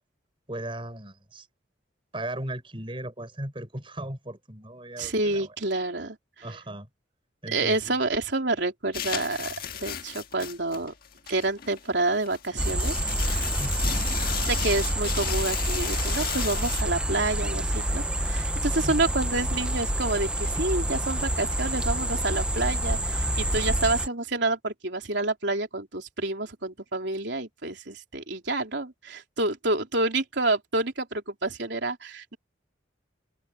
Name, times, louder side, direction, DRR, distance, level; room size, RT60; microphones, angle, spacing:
voice 1, 0.5-1.5 2.1-5.5 6.4-6.9 7.4-8.0 13.1-14.0 18.8-19.1, right 1 dB, 25° right, 6.0 m, -37 dB
voice 2, 5.0-6.2 7.5-9.5 9.8-10.9 11.3-13.2 14.5-32.4, right 2 dB, 65° right, 3.9 m, -28 dB
sound 1, 8.9-16.8, left 9 dB, 50° left, 1.6 m, -34 dB
sound 2, 12.6-24.1, right 1 dB, 5° right, 0.5 m, -27 dB
head